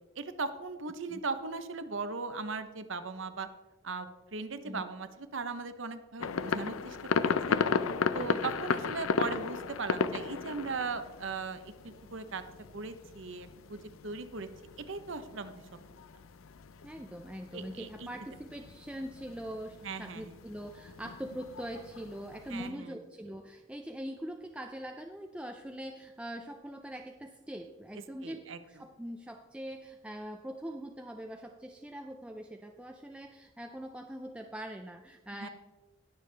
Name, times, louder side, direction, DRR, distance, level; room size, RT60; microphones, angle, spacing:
voice 1, 0.2-3.5 3.8-7.6 8.1-12.4 12.7-14.5 14.8-15.5 17.5-18.1 19.8-20.3 22.5-23.0 28.2-28.6 35.3-35.5, right 4 dB, 65° right, 10 dB, 0.8 m, -38 dB
sound 1, 6.2-22.7, left 5 dB, 75° left, 0.5 m, -36 dB
voice 2, 16.8-35.5, equal, 5° right, 3 dB, 0.4 m, -42 dB
19.5 x 6.9 x 3.3 m, 1.2 s
head